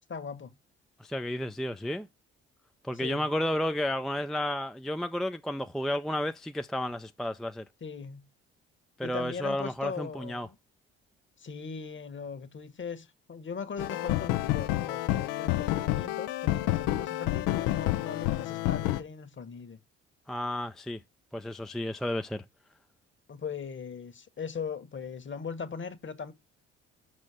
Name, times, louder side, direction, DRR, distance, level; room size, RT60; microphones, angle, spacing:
voice 1, 0.1-0.5 3.0-3.3 7.8-8.3 9.0-10.6 11.4-19.8 23.3-26.3, left 6 dB, 35° left, 1.4 m, -39 dB
voice 2, 1.0-2.1 2.8-7.6 9.0-10.5 20.3-21.0 21.3-22.4, left 1 dB, ahead, 0.4 m, -32 dB
sound 1, 13.8-19.0, left 16 dB, 70° left, 0.6 m, -29 dB
6.2 x 4.3 x 4.9 m
hypercardioid pair, 50°, 33 cm